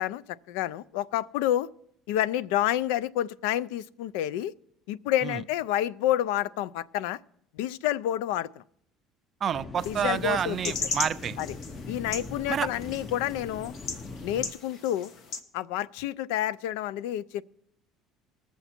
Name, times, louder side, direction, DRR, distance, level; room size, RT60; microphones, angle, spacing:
voice 1, 0.0-1.7 2.1-4.5 4.9-7.2 7.5-8.6 9.9-10.7 11.4-11.5 11.9-13.7 14.2-15.1 15.5-17.4, left 12 dB, 90° left, 0.3 m, -29 dB
voice 2, 9.4-11.4 12.5-12.7, right 8 dB, 40° right, 0.4 m, -29 dB
sound 1, 9.5-14.5, left 3 dB, 25° left, 0.8 m, -41 dB
sound 2, 9.8-15.4, left 5 dB, 60° left, 1.1 m, -38 dB
20.0 x 7.1 x 4.3 m
cardioid pair, 115°, 0 cm